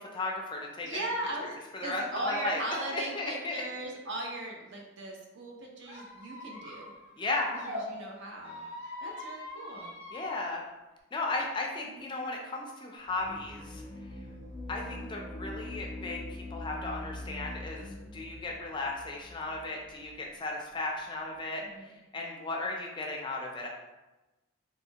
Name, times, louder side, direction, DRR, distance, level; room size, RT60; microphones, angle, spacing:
voice 1, 0.0-1.0 1.7-2.6 2.9-3.6 7.2-7.5 10.1-10.6 11.1-13.8 14.7-16.2 16.5-23.7, left 2 dB, 20° left, 0 dB, 0.3 m, -35 dB
voice 2, 0.8-6.9 7.7-9.9 11.8-12.1 21.6-22.0, right 1 dB, 55° right, -1 dB, 0.6 m, -38 dB
Squeak, 5.8-7.8 8.4-10.5, left 1 dB, 30° right, 0.9 m, -43 dB
sound 1, 13.0-20.2, left 1 dB, 5° right, 0.8 m, -43 dB
3.2 x 2.7 x 2.8 m, 1.1 s
head